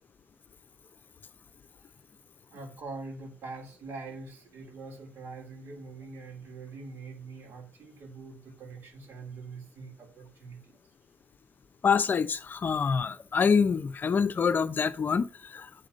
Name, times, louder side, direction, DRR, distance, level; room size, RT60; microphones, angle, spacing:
voice 1, 2.5-10.7, right 3 dB, 70° right, 2.9 m, -43 dB
voice 2, 11.8-15.7, left 6 dB, 45° left, 0.6 m, -26 dB
8.1 x 3.8 x 6.2 m
cardioid pair, 75°, 5 cm